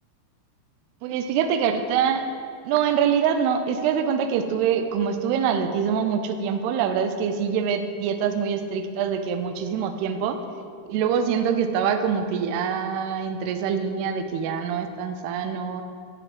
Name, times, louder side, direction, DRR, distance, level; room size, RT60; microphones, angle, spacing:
voice 1, 1.0-2.2 2.7-10.4 10.9-15.8, right 7 dB, 80° right, 7 dB, 2.5 m, -24 dB
12.0 x 4.7 x 7.6 m, 2.3 s
omnidirectional pair, 5.0 m